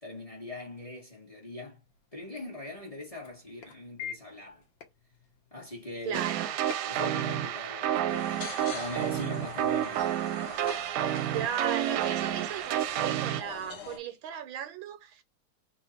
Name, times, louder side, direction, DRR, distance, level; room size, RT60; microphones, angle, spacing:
voice 1, 0.0-1.8 2.1-4.6 5.5-6.2 6.8-10.1, left 2 dB, 20° left, 1.2 m, -42 dB
sound 1, 1.8-9.7, left 9 dB, 60° left, 1.6 m, -48 dB
voice 2, 6.0-6.5 11.3-15.2, right 9 dB, 75° right, 1.4 m, -36 dB
sound 2, 6.1-13.4, right 11 dB, 90° right, 1.5 m, -30 dB
sound 3, 8.1-14.0, left 5 dB, 80° left, 2.0 m, -45 dB
3.9 x 2.5 x 4.3 m
omnidirectional pair, 2.4 m